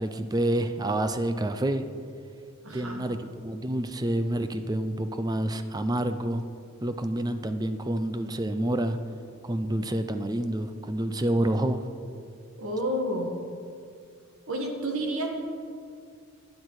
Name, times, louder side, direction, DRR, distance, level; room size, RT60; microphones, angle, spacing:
voice 1, 0.0-1.9 2.7-6.4 6.8-9.0 9.4-11.8, right 1 dB, 20° right, 9 dB, 0.5 m, -28 dB
voice 2, 2.6-3.0 12.6-13.3 14.5-15.3, right 1 dB, 75° right, 2 dB, 1.6 m, -30 dB
12.0 x 9.6 x 4.8 m, 2.3 s
head